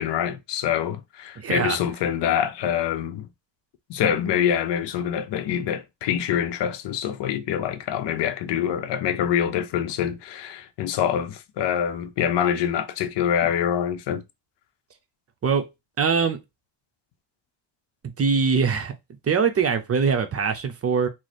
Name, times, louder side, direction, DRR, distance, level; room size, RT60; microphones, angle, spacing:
voice 1, 0.0-3.3 3.9-14.2, left 9 dB, 70° left, 0.6 m, -25 dB
voice 2, 1.4-1.8 15.4-15.7 16.0-16.4 18.2-18.9 19.2-21.1, right 5 dB, 35° right, 0.6 m, -22 dB
3.1 x 2.0 x 4.0 m
cardioid pair, 100°, 44 cm